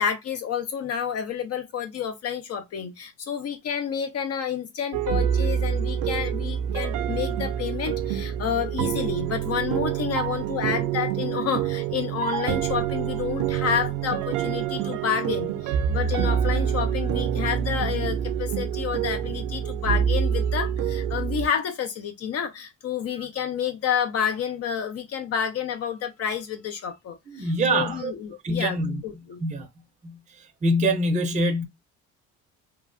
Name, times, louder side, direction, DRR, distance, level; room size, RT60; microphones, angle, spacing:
voice 1, 0.0-29.4, left 8 dB, 50° left, 0.6 m, -29 dB
Relaxing Piano, 4.9-21.5, right 9 dB, 80° right, 0.5 m, -26 dB
voice 2, 27.3-28.1 28.4-29.0 29.4-29.7 30.0-30.2 30.6-31.7, right 1 dB, 25° right, 0.6 m, -24 dB
3.1 x 2.3 x 2.5 m
cardioid pair, 105°, 30 cm